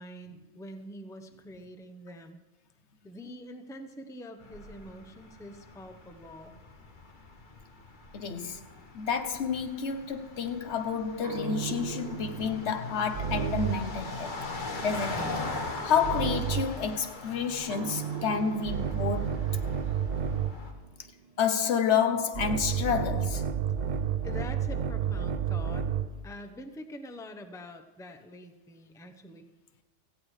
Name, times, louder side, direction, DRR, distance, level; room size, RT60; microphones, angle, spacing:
voice 1, 0.0-2.4 3.0-6.6 24.2-25.9 26.2-29.5, left 1 dB, 5° left, 0.7 m, -45 dB
sound 1, 4.4-20.7, left 2 dB, 45° left, 1.4 m, -41 dB
voice 2, 8.1-8.6 8.9-19.4 21.4-23.5, left 6 dB, 70° left, 1.1 m, -30 dB
sound 2, 11.2-14.0 16.0-16.8 17.7-20.7 22.3-26.2, right 8 dB, 50° right, 0.5 m, -31 dB
17.0 x 15.0 x 3.2 m
omnidirectional pair, 1.2 m